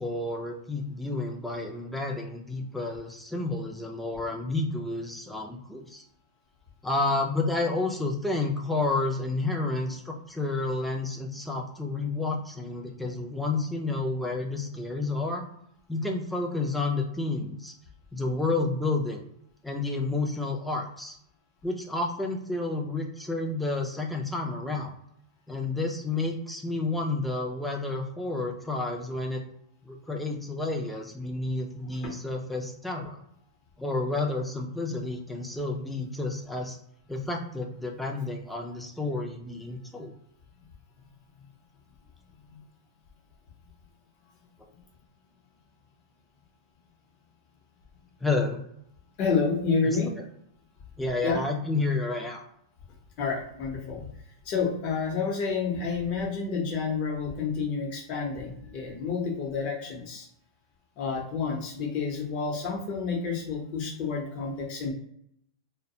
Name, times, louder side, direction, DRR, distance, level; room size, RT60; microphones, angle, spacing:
voice 1, 0.0-6.0 6.8-15.4 15.9-17.7 18.1-19.2 19.6-21.2 21.6-24.9 25.5-29.4 29.9-33.2 33.8-36.8 37.1-40.1 48.2-48.6 49.8-50.2 51.0-52.5, left 2 dB, ahead, 0 dB, 0.4 m, -30 dB
voice 2, 49.2-50.1 51.2-51.4 53.2-54.0 54.4-60.3 61.0-64.9, left 5 dB, 40° left, 0 dB, 0.8 m, -29 dB
2.3 x 2.2 x 2.7 m, 0.72 s
hypercardioid pair, 145°, 3 cm